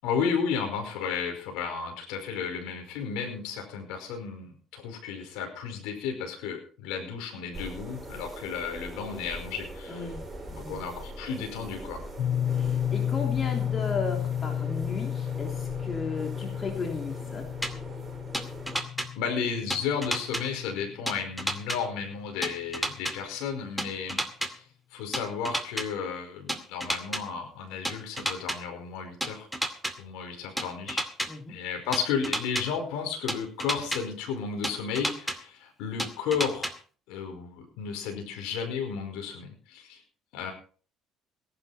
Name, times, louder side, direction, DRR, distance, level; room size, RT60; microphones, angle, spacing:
voice 1, 0.0-10.1 10.6-12.0 19.1-24.7 24.9-29.5 30.0-31.0 31.5-36.7 37.1-40.0 40.3-40.5, left 6 dB, 85° left, 3 dB, 5.1 m, -33 dB
sound 1, 7.5-18.8, right 2 dB, 15° right, 6.3 m, -42 dB
voice 2, 9.9-10.2 10.5-10.8 12.6-17.5 31.3-31.6, left 4 dB, 35° left, 2 dB, 3.1 m, -35 dB
sound 2, 12.2-22.1, left 10 dB, 55° left, 0.8 m, -32 dB
sound 3, 17.6-17.7 18.3-19.1 19.7-20.4 21.1-21.8 22.4-23.1 23.8-24.5 25.1-25.9 26.5-27.2 27.8-28.6 29.2-29.9 30.6-31.3 31.9-32.6 33.3-34.0 34.6-35.4 36.0-36.7, equal, ahead, 2.3 m, -30 dB
18.0 x 11.5 x 4.3 m, 0.42 s
cardioid pair, 95°, 0 cm